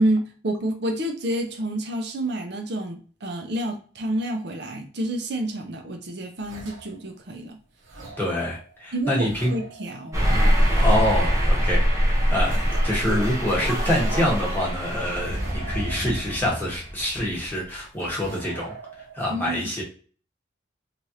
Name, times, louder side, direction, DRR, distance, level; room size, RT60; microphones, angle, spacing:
voice 1, 0.0-7.6 8.9-10.2 19.3-19.6, right 1 dB, 55° right, 3 dB, 0.6 m, -28 dB
sound 1, 6.4-7.4 7.8-17.3 17.7-19.2, right 3 dB, 85° right, 0.9 m, -43 dB
voice 2, 8.2-9.5 10.6-18.7 19.1-19.8, left 1 dB, 10° left, -5 dB, 1.1 m, -26 dB
sound 2, 10.1-17.5, equal, 15° right, 0.6 m, -23 dB
3.2 x 2.4 x 2.8 m, 0.41 s
head